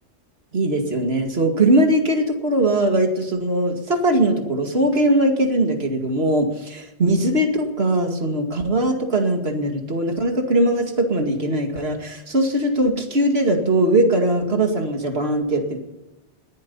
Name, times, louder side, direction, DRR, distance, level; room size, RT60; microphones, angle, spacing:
voice 1, 0.5-15.8, right 1 dB, 60° right, 4 dB, 2.5 m, -20 dB
20.0 x 10.5 x 5.6 m, 0.99 s
omnidirectional pair, 1.2 m